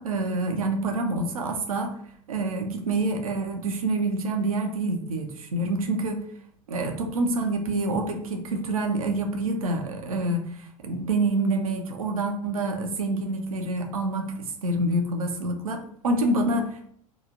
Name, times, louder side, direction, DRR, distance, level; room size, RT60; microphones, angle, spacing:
voice 1, 0.0-1.9 2.3-6.2 6.7-16.9, right 2 dB, 85° right, 3 dB, 0.6 m, -27 dB
2.9 x 2.4 x 3.6 m, 0.65 s
hypercardioid pair, 80°, 18 cm